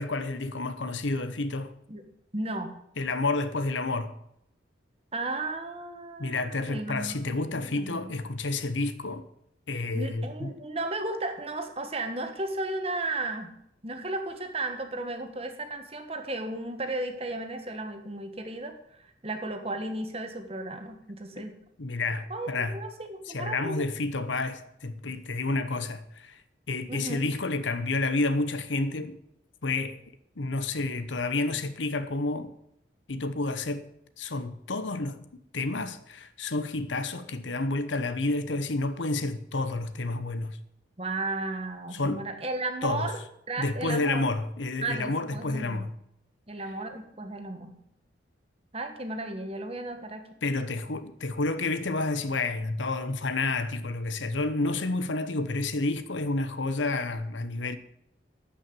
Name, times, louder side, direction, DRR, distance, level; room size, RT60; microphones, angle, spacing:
voice 1, 0.0-1.8 3.0-4.1 6.2-9.3 9.7-10.5 21.4-21.5 21.8-22.8 23.3-26.4 26.7-29.2 29.6-30.0 30.4-32.5 33.1-33.8 34.2-35.2 35.5-40.6 41.9-42.2 42.8-43.1 43.6-45.9 50.4-57.8, left 2 dB, 80° left, 1.0 m, -30 dB
voice 2, 2.3-2.7 5.1-8.1 9.9-13.5 13.8-21.5 22.3-23.8 26.9-27.3 41.0-43.2 43.5-44.2 44.8-45.9 46.5-47.7 48.7-50.3, right 2 dB, 30° right, 1.5 m, -34 dB
13.0 x 5.9 x 9.1 m
head